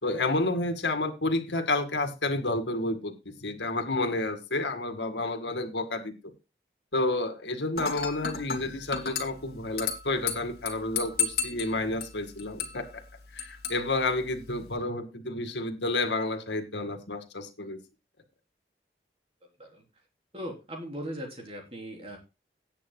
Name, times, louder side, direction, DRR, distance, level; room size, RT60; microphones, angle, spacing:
voice 1, 0.0-6.1 6.9-13.0 13.3-17.8, left 2 dB, 85° left, 7 dB, 2.1 m, -30 dB
Dishes pots and pans / Glass, 7.8-14.8, left 6 dB, 60° left, 2.2 m, -35 dB
voice 2, 20.3-22.2, equal, 35° right, 1 dB, 3.9 m, -39 dB
18.0 x 8.6 x 2.3 m, 0.28 s
head